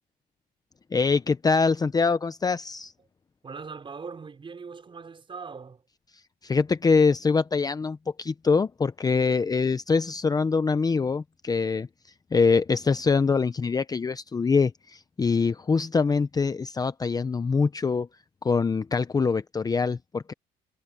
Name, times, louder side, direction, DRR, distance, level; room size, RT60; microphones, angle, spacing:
voice 1, 0.9-2.9 6.4-11.9 12.3-18.1 18.4-20.3, left 4 dB, 20° left, 0.8 m, -24 dB
voice 2, 3.4-5.8, right 5 dB, 30° right, 5.5 m, -40 dB
cardioid pair, 110°, 17 cm